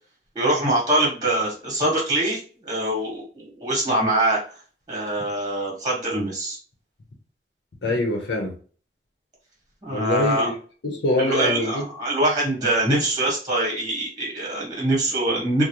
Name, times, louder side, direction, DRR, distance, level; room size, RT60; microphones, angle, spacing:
voice 1, 0.3-4.4 4.9-6.6 9.8-10.5 11.2-15.6, right 1 dB, 20° right, 1.1 m, -23 dB
voice 2, 7.8-8.5 9.9-10.5 10.8-11.7, left 1 dB, 85° left, 0.7 m, -24 dB
3.7 x 2.0 x 2.9 m
head